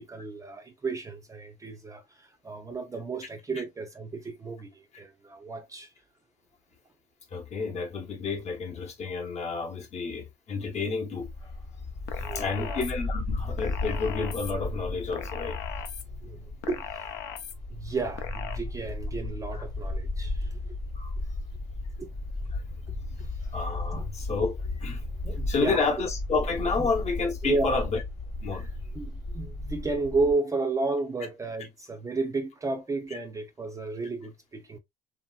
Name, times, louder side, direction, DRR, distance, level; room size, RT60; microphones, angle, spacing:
voice 1, 0.0-5.9 12.2-12.9 16.2-17.0 17.7-20.7 22.0-22.1 23.2-23.3 23.9-24.0 25.2-25.9 26.8-26.9 27.4-27.9 28.5-34.8, right 3 dB, 20° right, 0.5 m, -33 dB
voice 2, 7.3-11.3 12.3-15.6 19.5-19.6 20.9-21.1 22.5-22.6 23.5-25.0 25.5-28.0 28.4-28.7, left 4 dB, 40° left, 0.9 m, -30 dB
Bark, 11.2-30.3, left 2 dB, 25° left, 1.0 m, -35 dB
sound 1, 12.1-12.9 13.6-14.5 15.1-16.0 16.6-17.5 18.2-18.6, left 9 dB, 70° left, 0.6 m, -38 dB
3.1 x 2.7 x 2.2 m
cardioid pair, 110°, 18 cm